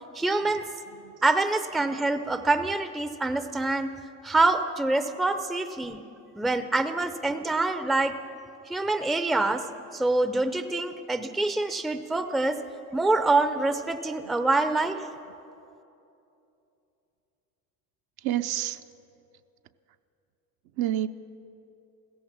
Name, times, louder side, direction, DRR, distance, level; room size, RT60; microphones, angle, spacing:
voice 1, 0.1-0.6 1.2-3.9 4.2-6.0 6.3-8.2 8.7-9.6 9.9-12.6 12.9-15.0, right 2 dB, ahead, 10 dB, 0.5 m, -25 dB
voice 2, 18.2-18.8 20.8-21.1, right 12 dB, 50° right, 9 dB, 0.7 m, -28 dB
16.0 x 14.5 x 5.9 m, 2.7 s
hypercardioid pair, 80°, 47 cm